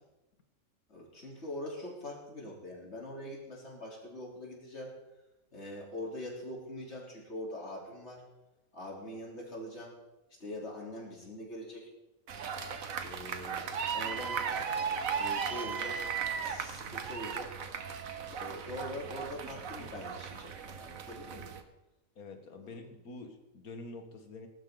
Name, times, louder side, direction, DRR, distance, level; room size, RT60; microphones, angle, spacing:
voice 1, 0.9-5.0 5.5-8.2 8.7-9.9 10.3-11.9 13.0-14.7 15.2-16.1 16.3-17.6 18.2-21.5 22.6-22.9, left 1 dB, 50° left, -3 dB, 3.9 m, -43 dB
sound 1, 12.3-21.6, right 6 dB, 70° right, 1.5 m, -36 dB
voice 2, 22.2-24.5, left 3 dB, 85° left, 6 dB, 2.0 m, -46 dB
19.5 x 12.0 x 3.9 m, 1.0 s
omnidirectional pair, 1.5 m